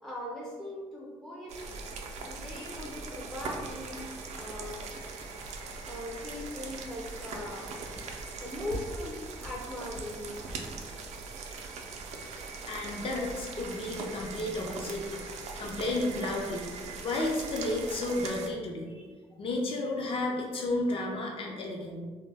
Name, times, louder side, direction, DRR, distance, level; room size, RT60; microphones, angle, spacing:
voice 1, 0.0-1.8 2.3-4.1 4.4-4.8 5.8-7.7 8.4-10.5, left 1 dB, 5° left, -3 dB, 0.4 m, -40 dB
sound 1, 1.5-18.5, right 4 dB, 65° right, 0.4 m, -41 dB
sound 2, 3.0-9.1 9.4-10.6, left 1 dB, 80° left, 1.0 m, -48 dB
voice 2, 12.7-15.1 15.6-16.7 17.0-19.0 19.4-22.0, left 2 dB, 50° left, -1 dB, 0.6 m, -32 dB
2.2 x 2.1 x 3.3 m, 1.4 s
supercardioid pair, 75°, 12 cm